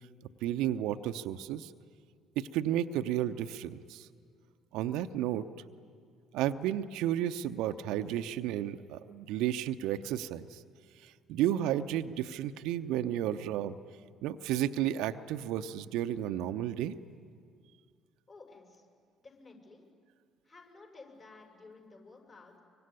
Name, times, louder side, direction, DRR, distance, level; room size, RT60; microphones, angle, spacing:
voice 1, 0.4-1.7 2.4-4.1 4.7-5.5 6.3-10.6 11.0-13.7 14.2-16.9, right 11 dB, 65° right, 9 dB, 0.8 m, -32 dB
voice 2, 18.3-18.9 19.2-19.8 20.4-22.6, left 3 dB, 40° left, 1 dB, 7.0 m, -53 dB
24.5 x 24.0 x 9.9 m, 2.1 s
figure-of-eight pair, 50°, 0 cm